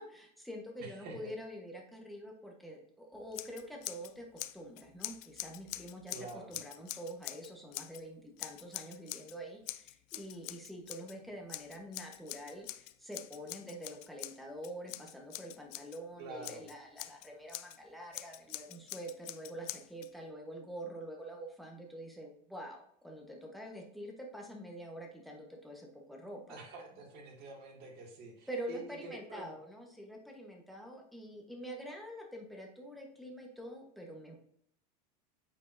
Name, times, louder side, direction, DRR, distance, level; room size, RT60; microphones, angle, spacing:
voice 1, 0.0-26.6 28.5-34.4, right 1 dB, ahead, 0 dB, 1.2 m, -46 dB
voice 2, 0.8-1.3 6.1-6.5 16.2-16.6 26.5-29.5, right 3 dB, 50° right, -1 dB, 2.2 m, -47 dB
Scissors, 3.3-4.1 4.4-8.0 8.4-9.4 9.7-11.2 11.5-16.0 16.4-17.8 18.1-20.1, left 17 dB, 65° left, 0.4 m, -44 dB
8.2 x 4.7 x 2.7 m, 0.69 s
supercardioid pair, 135°, 21 cm